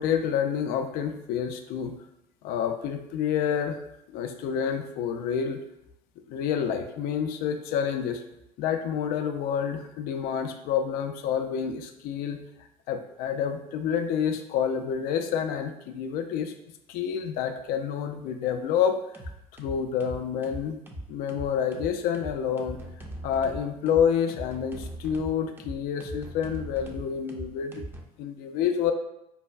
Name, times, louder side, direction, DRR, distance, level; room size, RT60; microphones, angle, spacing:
voice 1, 0.0-1.9 2.4-3.8 4.1-5.6 6.3-8.2 8.6-12.4 12.9-16.5 16.9-19.0 19.6-20.8 21.1-22.8 23.2-27.8 28.2-28.9, left 8 dB, 55° left, 7 dB, 0.4 m, -28 dB
sound 1, 18.4-18.7 19.1-28.0, right 1 dB, 10° right, 0.5 m, -40 dB
5.2 x 2.2 x 2.2 m, 0.83 s
figure-of-eight pair, 65°, 19 cm